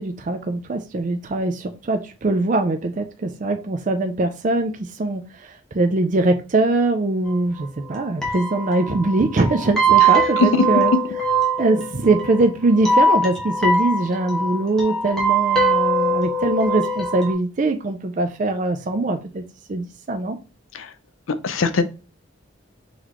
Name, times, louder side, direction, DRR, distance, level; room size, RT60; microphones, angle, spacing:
voice 1, 0.0-5.2 5.7-10.9 11.6-19.4 19.7-20.4, right 2 dB, 40° right, 0.4 m, -22 dB
sound 1, 7.3-7.4 7.6-7.7 7.9-8.0 8.2-17.3, right 3 dB, 5° left, 1.0 m, -21 dB
voice 2, 10.0-10.7 20.7-20.9 21.4-21.8, left 3 dB, 85° left, 0.5 m, -21 dB
3.9 x 3.0 x 3.0 m
head